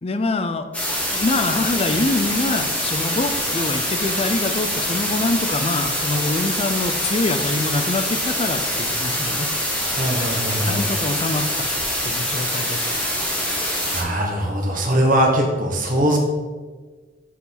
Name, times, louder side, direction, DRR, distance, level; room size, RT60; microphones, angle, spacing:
voice 1, 0.0-9.5 10.7-12.9, left 2 dB, 35° left, 9 dB, 0.5 m, -25 dB
sound 1, 0.7-14.0, equal, 5° left, 1.4 m, -24 dB
voice 2, 9.9-10.8 13.9-16.2, right 1 dB, 45° right, 0 dB, 1.4 m, -21 dB
8.1 x 4.9 x 4.0 m, 1.4 s
head